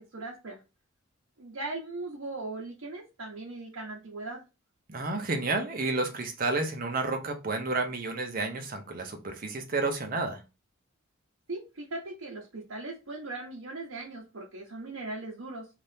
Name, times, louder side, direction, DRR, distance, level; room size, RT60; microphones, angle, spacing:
voice 1, 0.1-0.6 1.4-4.4 11.5-15.7, right 2 dB, 75° right, 0.7 m, -39 dB
voice 2, 4.9-10.4, right 3 dB, 40° right, 0.6 m, -31 dB
2.7 x 2.4 x 3.3 m
head